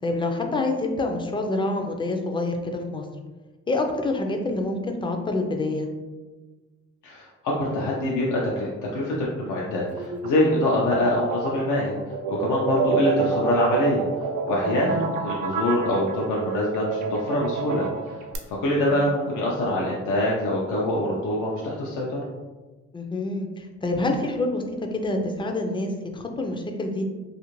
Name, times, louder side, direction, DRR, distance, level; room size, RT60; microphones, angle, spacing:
voice 1, 0.0-3.0 3.7-5.9 14.6-15.1 22.9-27.0, left 2 dB, 15° left, 3 dB, 0.4 m, -27 dB
voice 2, 7.0-12.0 12.3-14.0 14.5-18.2 18.5-22.2, left 1 dB, 75° left, -4 dB, 0.6 m, -24 dB
sound 1, 9.9-18.4, right 5 dB, 85° right, 0.5 m, -28 dB
2.5 x 2.5 x 3.0 m, 1.2 s
cardioid pair, 90°, 30 cm